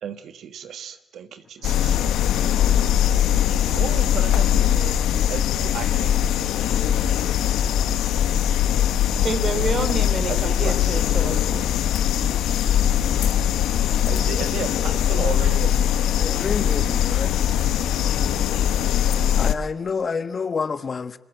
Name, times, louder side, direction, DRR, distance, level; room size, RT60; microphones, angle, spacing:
voice 1, 0.0-2.0 3.7-5.0 5.3-6.1 10.3-11.0 14.1-15.7, right 8 dB, 70° right, 1.4 m, -34 dB
sound 1, 1.6-19.5, left 10 dB, 85° left, 1.3 m, -21 dB
voice 2, 9.2-11.7, right 4 dB, 45° right, 3.4 m, -28 dB
voice 3, 16.2-17.4 19.4-21.2, left 5 dB, 40° left, 1.4 m, -28 dB
29.0 x 23.5 x 8.0 m
cardioid pair, 90°, 0 cm